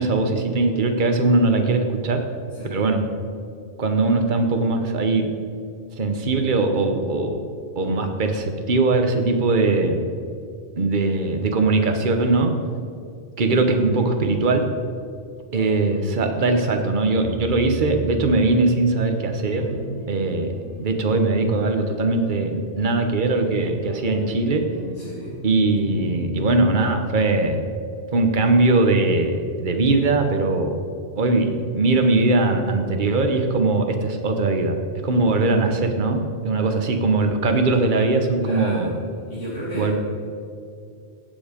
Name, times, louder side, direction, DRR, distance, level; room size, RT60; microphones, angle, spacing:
voice 1, 0.0-2.2 2.7-3.0 3.8-5.3 6.0-7.4 7.8-10.0 10.8-12.5 13.4-14.6 15.5-19.7 20.1-20.5 20.8-24.6 25.4-27.6 28.1-30.8 31.2-38.9 39.7-39.9, right 3 dB, 45° right, 5 dB, 1.2 m, -20 dB
sound 1, 13.5-15.0 15.5-27.7, left 1 dB, 5° left, 3.6 m, -38 dB
voice 2, 24.9-25.4 38.4-39.0 39.3-39.9, equal, 90° left, -9 dB, 2.9 m, -33 dB
17.0 x 7.5 x 5.1 m, 2.4 s
omnidirectional pair, 1.2 m